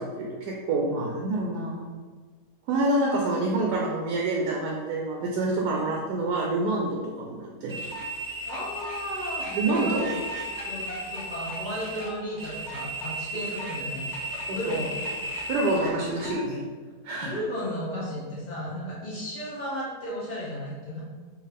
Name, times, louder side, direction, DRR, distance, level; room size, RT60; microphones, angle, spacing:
voice 1, 0.0-1.8 2.7-7.8 9.5-10.1 14.5-14.8 15.5-16.6 17.0-17.3, right 2 dB, 80° right, -1 dB, 1.1 m, -27 dB
sound 1, 7.7-16.4, right 1 dB, 30° right, 0.4 m, -34 dB
voice 2, 8.4-10.2 10.6-10.9 11.1-14.1 14.5-14.9 17.2-21.0, equal, 50° left, -8 dB, 0.5 m, -34 dB
4.7 x 2.5 x 3.3 m, 1.5 s
omnidirectional pair, 1.8 m